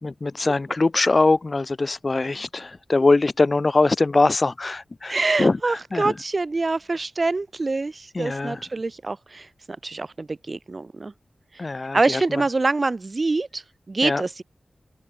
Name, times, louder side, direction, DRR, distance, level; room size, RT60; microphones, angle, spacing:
voice 1, 0.0-6.1 8.1-8.6 11.6-12.4 14.0-14.2, left 3 dB, 40° left, 3.2 m, -22 dB
voice 2, 5.1-9.5 9.8-11.1 11.9-13.6 13.9-14.4, right 3 dB, 40° right, 1.0 m, -25 dB
wide cardioid pair, 80°, 0 cm